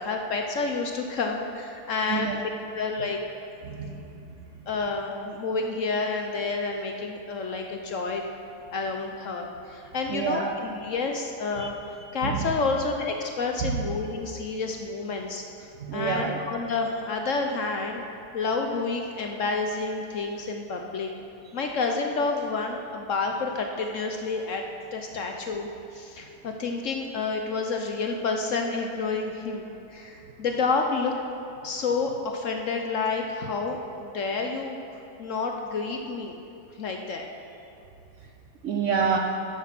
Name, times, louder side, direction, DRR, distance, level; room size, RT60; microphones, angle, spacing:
voice 1, 0.0-3.2 4.7-8.2 8.7-11.8 12.1-18.0 18.3-21.1 21.5-24.6 24.9-31.1 31.6-34.8 35.2-36.4 36.8-37.3, left 4 dB, 60° left, 3 dB, 0.9 m, -29 dB
voice 2, 3.6-4.0 10.1-10.5 11.6-11.7 12.0-12.5 13.6-13.8 15.8-16.4 38.6-39.2, right 6 dB, 60° right, 2 dB, 0.8 m, -28 dB
10.0 x 8.2 x 5.9 m, 2.8 s
omnidirectional pair, 1.8 m